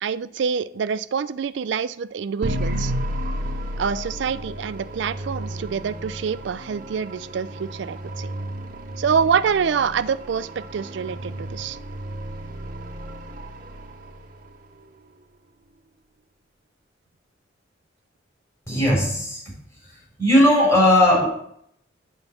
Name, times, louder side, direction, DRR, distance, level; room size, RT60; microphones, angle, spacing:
voice 1, 0.0-2.9 3.8-8.3 9.0-11.8, right 6 dB, 65° right, 15 dB, 0.4 m, -26 dB
sound 1, 2.4-14.6, right 1 dB, 45° right, 0.8 m, -32 dB
voice 2, 18.7-19.5 19.9-21.3, left 1 dB, 15° left, -4 dB, 3.4 m, -18 dB
8.9 x 4.0 x 7.1 m, 0.71 s
head